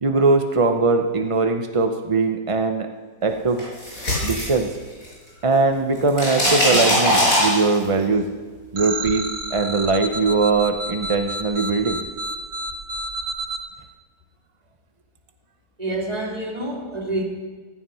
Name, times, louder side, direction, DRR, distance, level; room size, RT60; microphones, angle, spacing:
voice 1, 0.0-2.9 3.2-3.7 4.2-4.7 5.4-8.3 8.7-12.0, right 3 dB, 45° right, 5 dB, 0.4 m, -21 dB
sound 1, 3.6-5.3 5.6-8.0, equal, 50° left, 6.6 m, -21 dB
sound 2, 8.7-13.6, right 2 dB, 60° right, 1.6 m, -30 dB
voice 2, 15.8-17.2, right 1 dB, 20° right, -2 dB, 2.9 m, -27 dB
15.5 x 15.0 x 5.7 m, 1.4 s
omnidirectional pair, 1.8 m